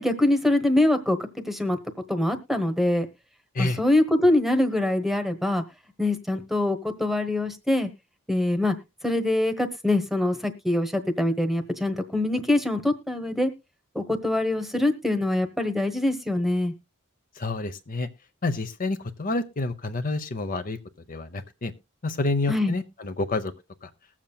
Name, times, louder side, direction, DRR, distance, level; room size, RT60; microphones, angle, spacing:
voice 1, 0.0-1.8 2.1-3.1 3.6-5.6 6.0-7.9 8.3-8.7 9.0-13.5 13.9-16.7 22.5-22.7, left 1 dB, ahead, 9 dB, 1.1 m, -24 dB
voice 2, 17.4-18.1 18.4-20.8 21.1-21.7 22.0-23.5 23.8-23.9, left 2 dB, 40° left, 8 dB, 0.7 m, -28 dB
20.5 x 7.3 x 2.2 m, 0.24 s
head